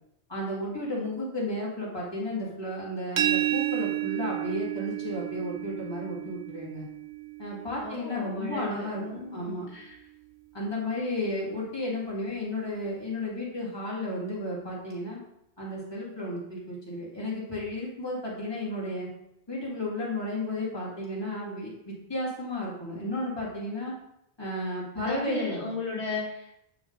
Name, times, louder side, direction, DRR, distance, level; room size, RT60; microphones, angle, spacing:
voice 1, 0.3-6.8 7.4-9.0 9.3-9.7 10.5-15.2 15.6-19.1 19.5-23.9 24.4-25.6, left 1 dB, 25° left, -6 dB, 2.1 m, -33 dB
sound 1, 3.2-8.9, right 13 dB, 55° right, 0.5 m, -32 dB
voice 2, 7.8-10.0 25.0-26.6, left 3 dB, 80° left, -3 dB, 1.6 m, -35 dB
8.9 x 3.9 x 3.8 m, 0.80 s
omnidirectional pair, 1.1 m